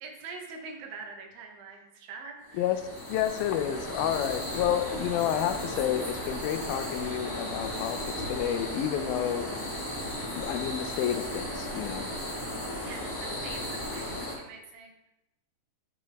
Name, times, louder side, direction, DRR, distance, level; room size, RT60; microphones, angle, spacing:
voice 1, 0.0-2.8 12.8-15.1, right 4 dB, 80° right, 2 dB, 2.9 m, -44 dB
sound 1, 2.5-14.3, left 1 dB, 5° left, 2.3 m, -35 dB
voice 2, 3.1-9.5 10.4-12.1, left 10 dB, 85° left, 9 dB, 2.5 m, -30 dB
sound 2, 5.5-13.3, right 1 dB, 35° right, 2.1 m, -51 dB
12.0 x 5.1 x 3.5 m, 0.91 s
omnidirectional pair, 4.1 m